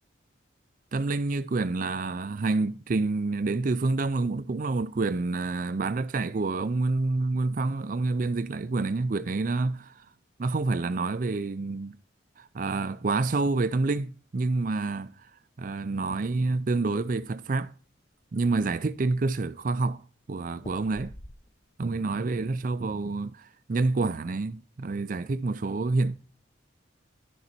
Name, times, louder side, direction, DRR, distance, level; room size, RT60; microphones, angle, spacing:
voice 1, 0.9-10.1 10.4-12.0 12.4-15.3 15.6-17.7 18.3-20.0 20.3-21.1 21.8-26.2, right 3 dB, 45° right, 0.4 m, -28 dB
sound 1, 17.3-17.6 18.1-18.2 18.4-19.1 20.6-21.8 22.2-22.6, left 1 dB, 25° left, 0.8 m, -48 dB
11.0 x 6.7 x 4.3 m
head